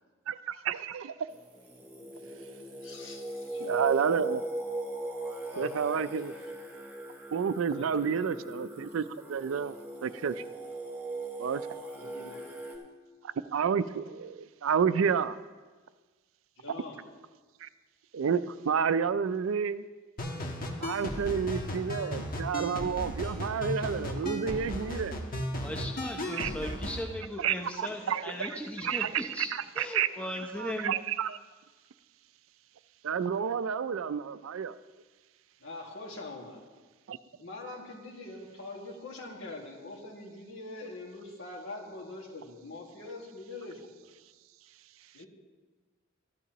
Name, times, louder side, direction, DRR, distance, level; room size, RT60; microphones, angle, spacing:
voice 1, 0.3-1.1 3.6-4.4 5.6-6.3 7.3-9.0 9.3-9.7 10.0-10.4 11.4-11.6 13.5-15.4 17.6-17.7 18.1-19.8 20.8-25.2 26.3-26.5 27.4-30.1 30.6-31.4 33.0-34.8 37.1-37.2, right 7 dB, 80° right, 0.4 m, -30 dB
Singing, 1.3-12.8, right 1 dB, 10° right, 1.4 m, -39 dB
voice 2, 2.8-3.9 5.5-6.1 7.7-8.5 12.0-12.7 16.6-17.0 22.0-22.1 25.5-25.6 27.7-28.0 35.6-36.6 37.3-44.1 45.1-45.3, left 2 dB, 65° left, 2.0 m, -44 dB
sound 1, 20.2-27.0, left 1 dB, 45° left, 1.3 m, -35 dB
voice 3, 25.5-29.5 29.8-31.0, left 1 dB, 5° left, 0.7 m, -38 dB
14.0 x 11.0 x 3.0 m
head